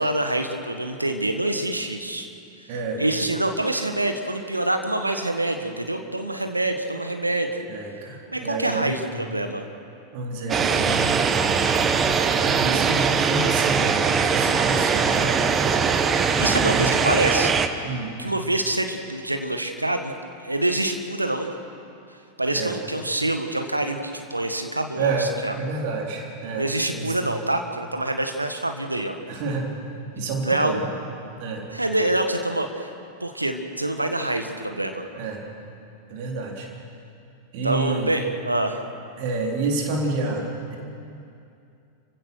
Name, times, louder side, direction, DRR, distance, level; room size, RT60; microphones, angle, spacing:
voice 1, 0.0-2.3 3.0-7.6 8.3-9.6 16.4-17.5 18.2-20.1 20.4-21.5 22.4-25.5 26.5-29.2 30.4-30.8 31.7-32.9 33.2-35.0 37.6-38.8, right 1 dB, 85° right, 6 dB, 1.6 m, -26 dB
voice 2, 2.7-3.0 7.7-9.0 10.1-11.7 12.3-15.4 16.7-16.9 17.8-18.1 22.5-22.8 25.0-25.3 25.6-27.4 29.3-29.7 30.1-30.9 31.4-31.6 35.2-35.4 36.1-36.7 37.5-38.1 39.2-40.5, right 3 dB, 45° right, 0 dB, 3.8 m, -29 dB
sound 1, 10.5-17.7, right 6 dB, 25° right, 1.1 m, -21 dB
29.5 x 16.0 x 6.3 m, 2.6 s
figure-of-eight pair, 90°, 0 cm